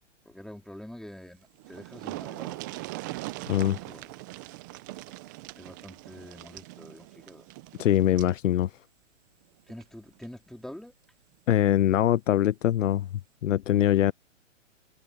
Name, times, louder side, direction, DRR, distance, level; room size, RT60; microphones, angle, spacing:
voice 1, 0.2-2.6 3.4-4.4 5.6-7.5 9.7-10.9, left 1 dB, ahead, 2.6 m, -46 dB
sound 1, 1.3-1.4 1.6-8.4 9.7-9.8 10.2-10.3, right 20 dB, 15° right, 0.5 m, -41 dB
voice 2, 3.5-3.8 7.8-8.7 11.5-13.1 13.4-14.1, left 12 dB, 75° left, 0.6 m, -23 dB
hypercardioid pair, 150°, 38 cm